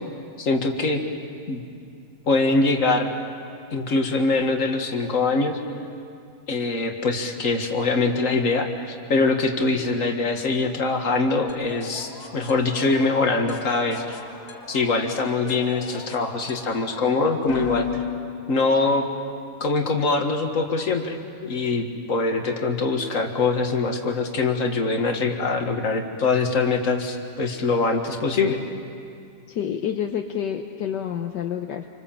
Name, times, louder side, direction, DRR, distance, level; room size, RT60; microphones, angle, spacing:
voice 1, 0.4-1.0 1.5-1.6 2.3-3.1 3.7-5.6 6.5-14.2 14.7-18.0 18.5-19.1 19.6-28.6, left 3 dB, 45° left, 4 dB, 2.1 m, -23 dB
sound 1, 11.5-19.3, left 8 dB, 90° left, 2.7 m, -36 dB
voice 2, 29.5-31.9, left 9 dB, 70° left, 4 dB, 1.5 m, -28 dB
27.5 x 25.5 x 7.4 m, 2.4 s
omnidirectional pair, 2.0 m